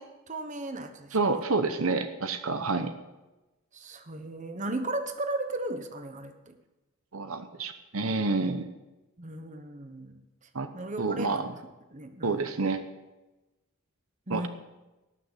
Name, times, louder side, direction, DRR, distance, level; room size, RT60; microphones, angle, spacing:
voice 1, 0.0-1.2 3.7-6.6 9.2-10.2 10.7-11.4 11.9-12.4 14.3-14.5, right 2 dB, 35° right, 7 dB, 1.2 m, -36 dB
voice 2, 1.1-2.9 7.1-8.7 10.5-10.7 11.0-11.5 12.2-12.8 14.3-14.5, right 3 dB, 75° right, 9 dB, 1.0 m, -28 dB
18.5 x 6.7 x 7.3 m, 1.1 s
head